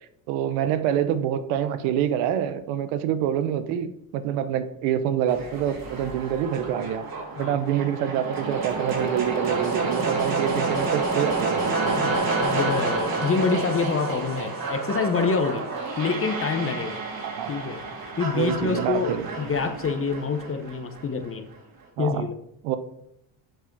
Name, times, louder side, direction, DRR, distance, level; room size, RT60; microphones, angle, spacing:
voice 1, 0.3-7.1 7.4-12.1 17.2-17.5 18.3-19.3 22.0-22.3 22.6-22.8, right 10 dB, 90° right, 11 dB, 0.9 m, -26 dB
sound 1, 5.3-21.3, right 3 dB, 45° right, 2.5 m, -29 dB
voice 2, 12.0-15.7 16.0-17.0 17.5-17.8 18.2-21.5 22.0-22.4, left 5 dB, 25° left, 7 dB, 0.9 m, -27 dB
7.7 x 4.8 x 4.6 m, 0.76 s
supercardioid pair, 95°, 49 cm